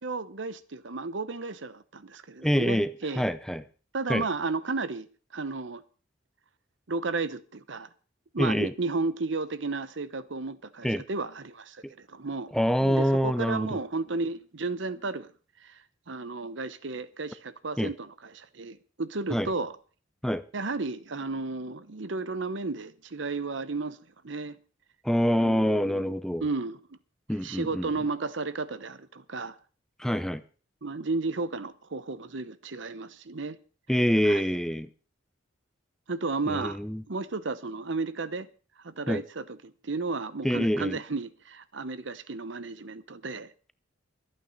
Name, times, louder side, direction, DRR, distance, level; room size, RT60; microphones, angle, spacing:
voice 1, 0.0-3.2 3.9-5.1 5.3-5.8 6.9-7.9 8.3-12.5 12.8-15.3 15.6-15.8 16.1-19.8 20.5-24.6 25.3-26.1 26.4-27.0 27.4-29.6 30.8-33.6 34.2-34.4 36.1-36.8 37.1-38.5 38.8-43.5, right 3 dB, 70° right, 0.9 m, -33 dB
voice 2, 2.4-3.6 4.1-4.3 8.4-8.7 10.8-11.0 12.5-13.7 17.8-17.9 19.3-19.5 20.2-20.4 25.0-26.5 27.3-27.9 30.0-30.4 33.9-34.9 36.5-37.0 39.1-39.2 40.4-41.0, equal, ahead, 0.6 m, -26 dB
24.0 x 9.0 x 4.1 m
head